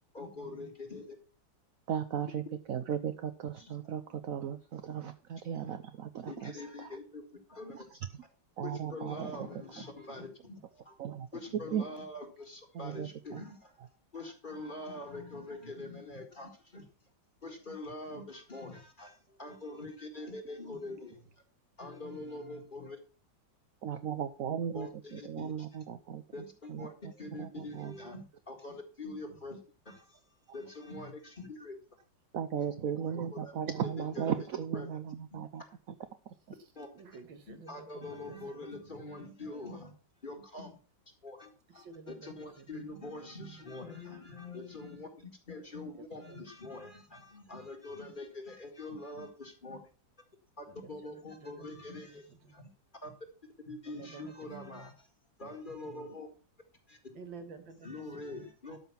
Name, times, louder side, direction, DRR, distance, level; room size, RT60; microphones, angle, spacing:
voice 1, 0.1-1.2 3.6-3.7 6.3-7.9 8.6-11.0 11.3-13.7 14.1-16.9 17.4-21.1 21.8-23.0 24.7-25.5 26.3-29.6 29.9-30.2 30.5-31.8 33.3-33.5 34.0-34.4 34.7-34.9 35.3-35.7 36.8-36.9 37.5-39.9 40.2-40.8 41.2-49.8 50.6-52.7 53.0-53.1 53.7-55.1 55.4-56.3 56.9-57.0 57.8-58.8, left 2 dB, 25° left, 4 dB, 2.0 m, -44 dB
voice 2, 1.9-6.9 7.7-8.0 8.6-9.5 11.0-11.3 11.5-11.8 12.7-13.4 23.8-27.1 27.4-27.9 32.3-35.6 36.3-36.4, right 8 dB, 60° right, 9 dB, 1.0 m, -36 dB
voice 3, 36.6-39.0 41.7-43.6 46.0-46.5 47.1-47.5 50.7-52.6 53.9-54.5 57.1-58.4, right 5 dB, 90° right, 7 dB, 2.3 m, -53 dB
12.5 x 5.6 x 5.8 m, 0.36 s
omnidirectional pair, 2.0 m